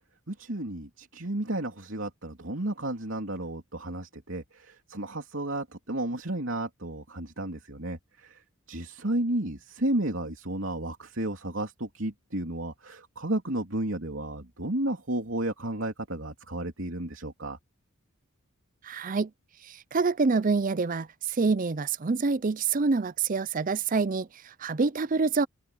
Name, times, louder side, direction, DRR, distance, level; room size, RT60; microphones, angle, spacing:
voice 1, 0.3-8.4 8.7-17.6, right 1 dB, 65° right, 3.4 m, -32 dB
voice 2, 18.8-19.3 19.7-25.5, right 4 dB, 40° right, 0.5 m, -26 dB
head